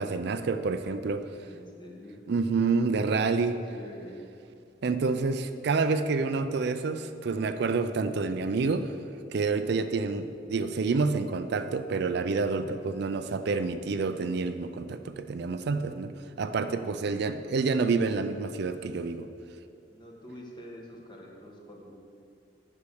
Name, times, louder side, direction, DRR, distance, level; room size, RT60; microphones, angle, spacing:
voice 1, 0.0-1.3 2.3-3.6 4.8-8.9 9.3-19.3, right 4 dB, 60° right, 10 dB, 0.4 m, -28 dB
voice 2, 1.4-2.3 3.4-4.2 16.9-17.3 19.9-21.9, equal, 25° left, -1 dB, 1.5 m, -47 dB
8.3 x 6.4 x 6.5 m, 2.5 s
head